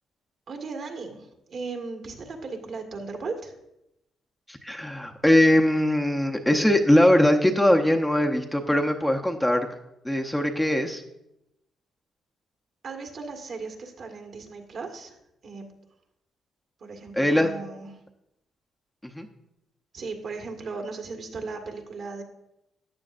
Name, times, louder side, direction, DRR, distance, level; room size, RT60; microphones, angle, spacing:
voice 1, 0.5-3.5 12.8-15.2 15.4-15.7 16.8-17.9 19.9-22.2, right 4 dB, 55° right, 2 dB, 1.7 m, -36 dB
voice 2, 4.5-9.7 10.0-11.0 17.2-17.5 19.1-19.3, left 1 dB, 5° left, 3 dB, 0.8 m, -21 dB
14.0 x 9.4 x 2.6 m, 0.86 s
cardioid pair, 90°, 0 cm